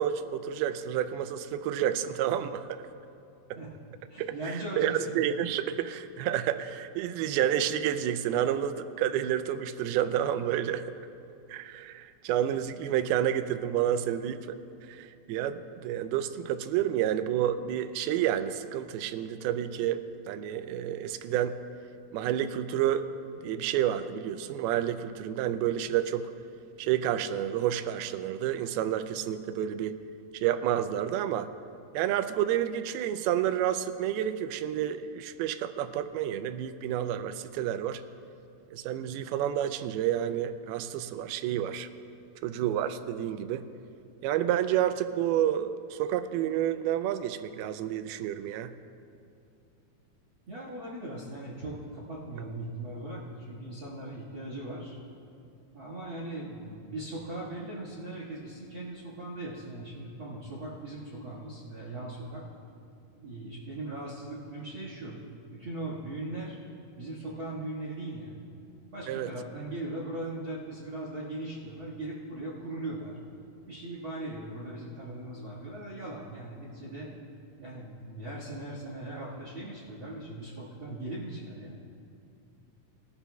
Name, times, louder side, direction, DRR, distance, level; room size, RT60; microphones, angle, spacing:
voice 1, 0.0-2.8 4.2-11.0 11.5-21.6 22.1-23.1 23.4-26.3 26.8-30.0 30.3-31.5 31.9-38.0 38.7-41.9 42.4-43.6 44.2-48.7 69.1-69.3, right 10 dB, 90° right, 11 dB, 2.5 m, -30 dB
voice 2, 4.1-5.2 50.5-55.0 55.7-62.4 63.2-66.6 67.0-68.4 68.9-73.2 73.7-77.1 77.6-81.8, right 1 dB, 45° right, -5 dB, 1.8 m, -39 dB
21.0 x 12.5 x 2.3 m, 2.5 s
omnidirectional pair, 4.3 m